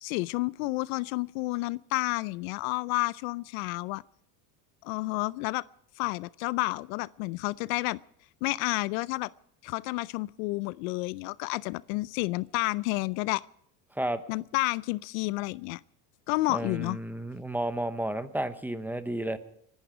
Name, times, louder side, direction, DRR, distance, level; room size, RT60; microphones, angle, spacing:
voice 1, 0.0-4.0 4.8-5.6 6.0-8.0 8.4-9.3 9.6-13.4 14.3-15.8 16.3-17.0, left 22 dB, 70° left, 0.5 m, -30 dB
voice 2, 16.5-19.4, right 1 dB, 5° right, 0.8 m, -32 dB
26.5 x 11.0 x 4.9 m
supercardioid pair, 130°, 43 cm